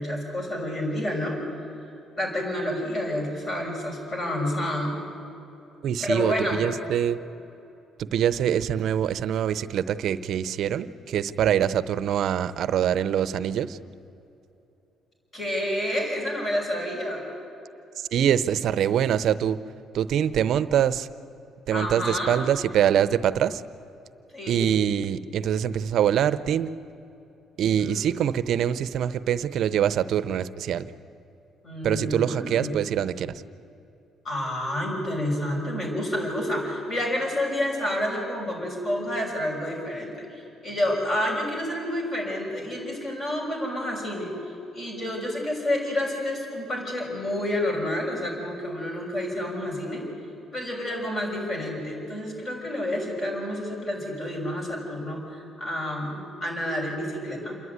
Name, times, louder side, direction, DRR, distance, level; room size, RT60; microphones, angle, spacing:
voice 1, 0.0-1.4 2.1-5.0 6.0-6.6 15.3-17.3 21.7-22.4 24.3-24.7 27.6-28.1 31.6-32.7 34.2-44.3 44.7-50.1 50.5-57.6, left 1 dB, 40° left, 0 dB, 6.3 m, -29 dB
voice 2, 5.8-7.2 8.0-13.8 18.0-19.6 19.9-21.1 21.7-23.6 24.5-26.7 27.6-30.9 31.8-33.4, right 9 dB, 65° right, 14 dB, 0.7 m, -24 dB
28.0 x 11.0 x 9.5 m, 2.8 s
cardioid pair, 125°, 0 cm